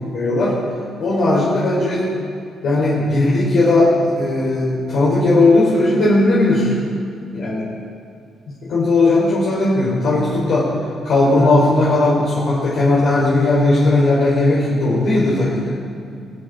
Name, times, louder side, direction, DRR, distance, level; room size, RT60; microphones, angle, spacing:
voice 1, 0.1-0.6 1.0-2.0 2.6-6.7 7.3-7.6 8.7-10.7 11.0-15.7, left 2 dB, 70° left, -8 dB, 3.7 m, -16 dB
22.5 x 8.0 x 4.0 m, 2.5 s
cardioid pair, 90°, 0 cm